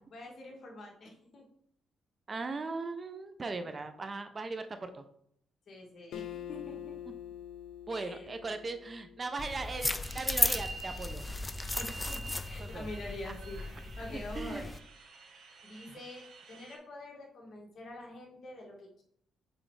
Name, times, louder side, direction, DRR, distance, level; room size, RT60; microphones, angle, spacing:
voice 1, 0.1-1.4 5.7-7.0 7.9-8.3 11.8-14.7 15.6-19.0, left 2 dB, 55° left, 0 dB, 1.7 m, -46 dB
voice 2, 2.3-5.0 7.1-7.2 7.9-11.2 12.6-12.9 13.2-13.3 14.1-14.6 15.9-16.0, right 3 dB, 30° right, 9 dB, 0.6 m, -38 dB
Acoustic guitar, 6.1-9.5, left 11 dB, 80° left, 0.4 m, -45 dB
sound 1, 9.4-14.8, left 2 dB, 15° left, 0.4 m, -35 dB
sound 2, 10.0-16.8, right 3 dB, 75° right, 1.5 m, -49 dB
6.2 x 3.3 x 4.7 m, 0.67 s
cardioid pair, 90°, 0 cm